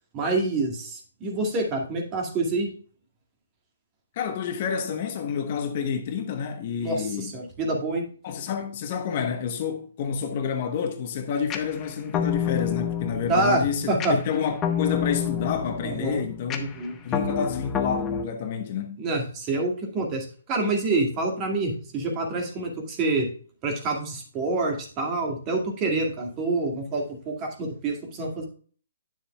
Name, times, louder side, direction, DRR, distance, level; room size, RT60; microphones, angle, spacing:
voice 1, 0.1-2.7 6.8-8.0 13.3-14.2 15.8-16.2 16.6-17.0 19.0-23.3 23.6-28.5, right 2 dB, 25° right, 2.2 m, -27 dB
voice 2, 4.2-7.3 8.2-16.6 17.0-19.0, left 7 dB, 45° left, 1.2 m, -29 dB
sound 1, 11.5-18.3, left 8 dB, 20° left, 0.9 m, -29 dB
9.9 x 7.0 x 2.4 m
hypercardioid pair, 135°, 0 cm